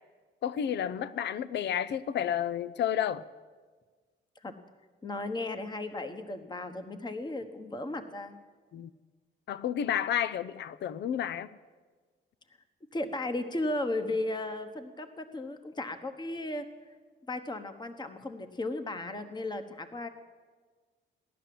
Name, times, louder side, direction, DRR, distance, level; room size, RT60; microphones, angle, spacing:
voice 1, 0.4-3.2 8.7-8.9 9.5-11.5, left 9 dB, 60° left, 0.6 m, -31 dB
voice 2, 5.0-8.4 12.9-16.6 17.3-20.1, left 2 dB, 20° left, 1.2 m, -35 dB
16.0 x 11.0 x 7.7 m
cardioid pair, 90°, 20 cm